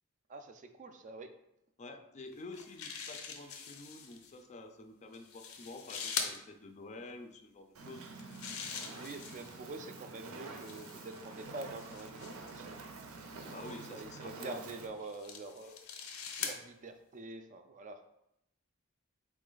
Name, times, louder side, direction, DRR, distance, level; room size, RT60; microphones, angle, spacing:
voice 1, 0.3-1.3 8.9-12.8 13.9-15.8 16.4-18.0, right 2 dB, 35° right, 7 dB, 0.3 m, -46 dB
voice 2, 1.8-8.1 13.4-14.7, left 2 dB, 35° left, 6 dB, 0.4 m, -49 dB
sound 1, 2.3-4.3 5.1-6.4 8.0-9.6 10.5-12.6 13.4-13.8 14.6-16.6, left 6 dB, 80° left, 0.6 m, -43 dB
Fire, 7.7-14.9, right 3 dB, 85° right, 0.6 m, -48 dB
4.2 x 3.1 x 3.8 m, 0.81 s
head